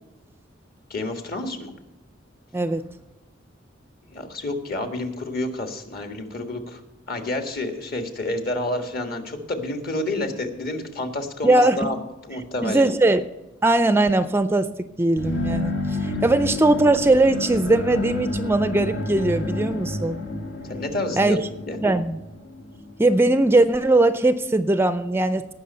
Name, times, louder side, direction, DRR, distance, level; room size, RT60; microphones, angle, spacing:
voice 1, 0.9-1.7 4.1-6.8 7.1-12.0 12.3-12.8 20.7-21.4 21.7-21.8, left 2 dB, 50° left, 5 dB, 1.6 m, -29 dB
voice 2, 2.5-2.8 11.4-11.9 12.6-13.2 13.6-14.7 15.0-20.2 21.2-21.4 21.8-22.2 23.0-25.5, right 2 dB, 10° right, 12 dB, 0.4 m, -20 dB
sound 1, 15.2-22.9, left 2 dB, 70° left, 1.5 m, -30 dB
18.0 x 6.1 x 5.5 m, 0.98 s
head